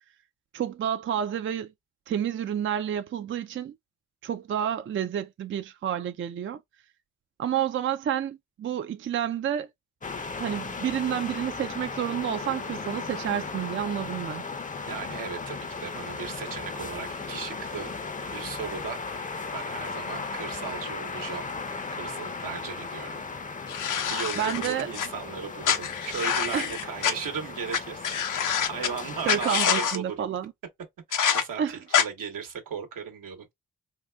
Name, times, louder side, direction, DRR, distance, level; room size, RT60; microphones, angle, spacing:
voice 1, 0.5-1.7 2.1-3.7 4.2-6.6 7.4-9.7 10.4-14.4 24.4-24.9 26.5-26.7 29.3-30.5 31.6-31.8, right 9 dB, 40° right, 0.4 m, -29 dB
sound 1, 10.0-29.5, left 4 dB, 25° left, 0.5 m, -36 dB
voice 2, 14.9-18.0 18.3-21.5 21.9-23.2 24.1-28.2 28.7-30.4 31.1-33.5, right 6 dB, 75° right, 1.0 m, -37 dB
sound 2, 23.7-25.1 25.6-27.1 27.7-27.8 28.0-28.9 29.3-30.0 31.1-31.4 31.9-32.0, left 8 dB, 65° left, 0.6 m, -26 dB
3.8 x 2.3 x 2.2 m
supercardioid pair, 50°, 33 cm